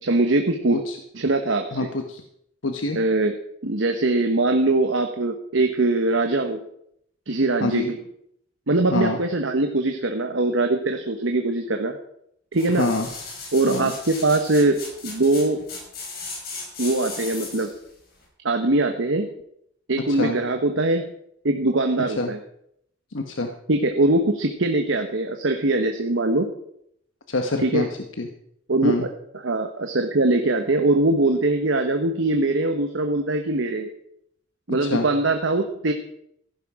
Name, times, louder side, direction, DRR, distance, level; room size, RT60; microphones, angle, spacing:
voice 1, 0.0-0.8 1.1-1.9 2.9-3.3 3.6-6.6 7.3-8.0 8.7-12.0 12.5-12.9 13.5-15.6 16.8-17.7 18.4-19.3 19.9-21.1 21.4-22.4 23.7-26.5 27.6-27.9 28.7-29.1 29.3-33.9 34.7-35.9, right 2 dB, 80° right, 5 dB, 1.1 m, -22 dB
voice 2, 1.7-2.2 2.6-3.0 7.6-7.9 8.9-9.2 12.8-13.1 13.7-13.9 20.1-20.4 22.2-22.3 23.1-23.5 27.3-27.9 28.2-28.3 28.8-29.0 34.8-35.0, left 2 dB, 90° left, 5 dB, 1.1 m, -25 dB
sound 1, 12.5-17.8 18.2-18.3, left 3 dB, 55° left, 5.3 m, -36 dB
15.0 x 11.0 x 4.9 m, 0.73 s
head